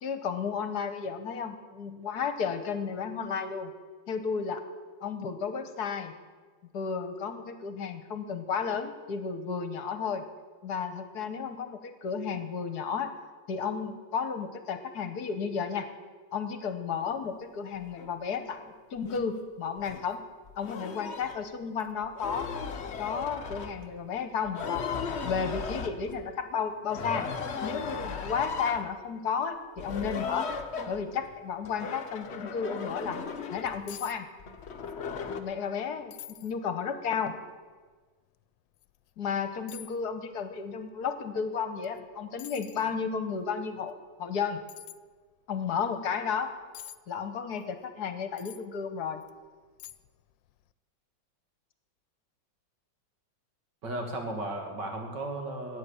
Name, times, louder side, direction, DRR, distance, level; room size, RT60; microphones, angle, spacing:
voice 1, 0.0-3.7 4.1-4.6 5.0-6.1 6.7-10.2 10.6-13.1 13.5-15.9 16.3-20.2 20.6-22.5 23.0-24.8 25.2-27.3 27.6-30.5 30.9-33.2 33.5-34.3 35.3-37.4 39.2-44.6 45.5-46.5 47.1-49.2, left 6 dB, 65° left, 10 dB, 1.4 m, -33 dB
sound 1, 18.0-18.1 19.0-19.3 19.8-20.0 20.5-21.4 22.0-24.0 24.4-26.3 26.9-28.9 29.8-31.3 31.6-33.9 34.4-35.4, left 5 dB, 45° left, 1.0 m, -36 dB
sound 2, 33.9-34.2 34.4-35.0 35.4-35.5 36.1-36.5 37.2-37.3 38.8-38.9 39.7-40.0 41.8-42.0 42.4-42.9 44.7-45.0 46.7-47.0 48.4-48.7 49.2-49.3 49.8-50.2 50.5-50.6, left 13 dB, 85° left, 1.3 m, -45 dB
voice 2, 53.8-55.8, right 2 dB, 70° right, 3 dB, 2.7 m, -35 dB
13.5 x 9.0 x 8.3 m, 1.4 s
omnidirectional pair, 2.0 m